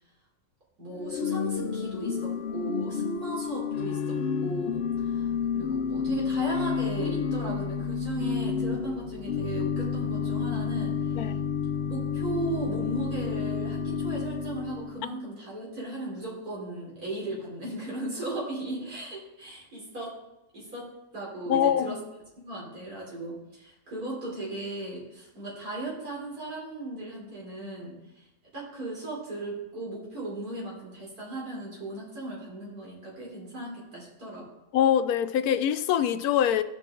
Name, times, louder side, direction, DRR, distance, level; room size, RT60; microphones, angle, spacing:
voice 1, 0.8-11.3 11.9-20.1 20.5-22.0 22.4-28.0 28.5-34.5, right 2 dB, 90° right, -4 dB, 4.1 m, -36 dB
Organ / Church bell, 0.9-15.1, left 6 dB, 60° left, 0.7 m, -30 dB
voice 2, 21.5-21.9 34.7-36.6, left 10 dB, 85° left, 11 dB, 1.1 m, -24 dB
15.0 x 6.2 x 3.8 m, 0.96 s
omnidirectional pair, 1.5 m